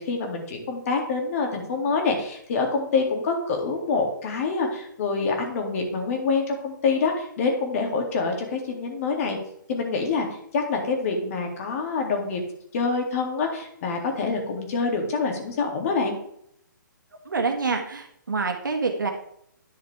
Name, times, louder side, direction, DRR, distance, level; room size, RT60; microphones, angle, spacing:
voice 1, 0.0-9.4 9.7-10.3 10.5-12.4 12.7-16.1, left 4 dB, 45° left, 2 dB, 2.4 m, -26 dB
voice 2, 17.2-19.1, right 4 dB, 75° right, 5 dB, 1.7 m, -26 dB
10.5 x 6.5 x 3.3 m, 0.69 s
figure-of-eight pair, 135°, 11 cm